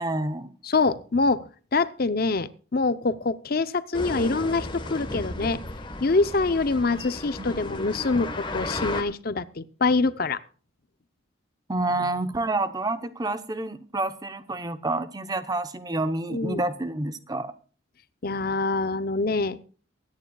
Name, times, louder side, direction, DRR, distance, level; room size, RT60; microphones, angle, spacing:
voice 1, 0.0-0.5 11.7-17.5, right 2 dB, 20° right, 0.8 m, -28 dB
voice 2, 0.6-1.5 1.7-5.6 6.0-10.4 16.3-16.6 18.2-19.6, left 3 dB, 50° left, 0.7 m, -25 dB
sound 1, 3.9-9.0, left 2 dB, 25° left, 1.2 m, -34 dB
23.5 x 9.6 x 2.3 m
head